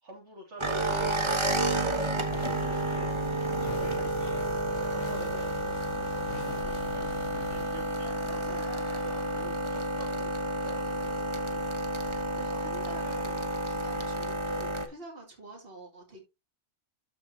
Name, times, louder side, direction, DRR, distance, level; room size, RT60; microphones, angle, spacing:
voice 1, 0.0-5.6 6.1-8.7 9.0-11.8, right 1 dB, 70° right, 3.0 m, -47 dB
sound 1, 0.6-14.9, right 1 dB, 25° right, 1.2 m, -31 dB
sound 2, 2.3-7.6, left 7 dB, 75° left, 1.0 m, -43 dB
sound 3, 4.5-4.6 5.5-5.8 6.3-6.4 7.5-7.6 8.0-9.5, left 3 dB, 30° left, 1.6 m, -48 dB
voice 2, 8.2-8.7 11.5-16.2, right 2 dB, 50° right, 2.9 m, -47 dB
13.5 x 5.0 x 2.8 m
omnidirectional pair, 1.2 m